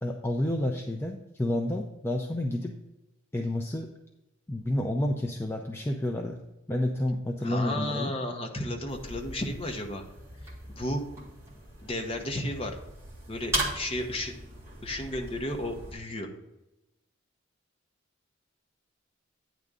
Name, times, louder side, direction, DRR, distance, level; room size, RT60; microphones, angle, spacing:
voice 1, 0.0-2.7 3.3-3.9 4.5-6.4 6.7-8.1, left 1 dB, 10° left, 2 dB, 0.5 m, -30 dB
voice 2, 7.4-10.0 10.7-11.0 11.8-12.8 13.3-14.3 14.8-16.3, left 1 dB, 30° left, 3 dB, 0.9 m, -33 dB
sound 1, 8.9-15.9, right 1 dB, 15° right, 1.7 m, -38 dB
9.2 x 3.6 x 6.6 m, 0.95 s
head